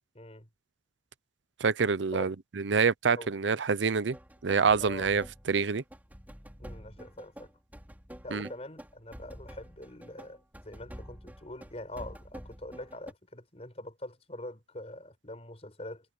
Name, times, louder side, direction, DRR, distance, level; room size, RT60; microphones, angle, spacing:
voice 1, 0.1-0.5 2.1-2.3 3.1-3.3 4.8-5.1 6.6-7.5 8.2-16.1, left 1 dB, 35° left, 4.7 m, -44 dB
voice 2, 1.6-4.2 4.4-5.8 8.3-8.5, right 5 dB, 80° right, 0.6 m, -27 dB
sound 1, 4.1-13.1, equal, 10° right, 4.4 m, -48 dB
head